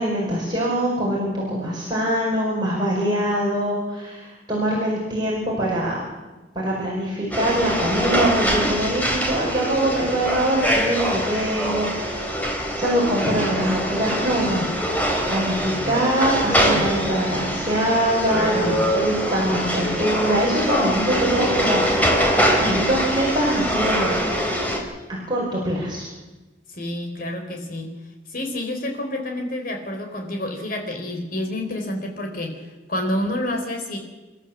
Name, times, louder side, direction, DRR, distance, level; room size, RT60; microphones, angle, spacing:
voice 1, 0.0-6.0 6.6-14.7 15.3-21.8 22.6-24.2 25.1-26.1, right 1 dB, 25° right, -5 dB, 5.4 m, -23 dB
sound 1, 7.3-24.8, equal, 10° left, 3.7 m, -23 dB
voice 2, 15.6-16.0 16.7-17.2 18.3-18.8 26.7-27.9 28.3-32.6 32.9-34.0, left 1 dB, 55° left, 3 dB, 4.2 m, -29 dB
29.0 x 13.0 x 7.4 m, 1.2 s
head